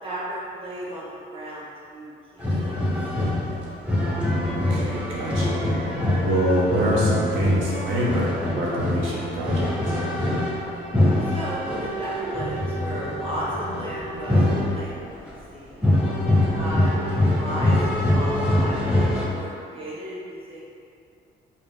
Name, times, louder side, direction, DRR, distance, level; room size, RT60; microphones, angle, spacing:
voice 1, 0.0-3.3 11.2-15.9 16.5-16.9 17.1-17.8 18.1-20.6, equal, 30° right, -7 dB, 1.2 m, -35 dB
sound 1, 2.4-15.3 15.8-19.2, left 1 dB, 5° right, 0.8 m, -24 dB
voice 2, 4.1-5.9 6.2-10.0 16.4-16.7, right 1 dB, 85° right, -5 dB, 0.7 m, -26 dB
3.8 x 2.7 x 3.4 m, 2.5 s
cardioid pair, 90°, 20 cm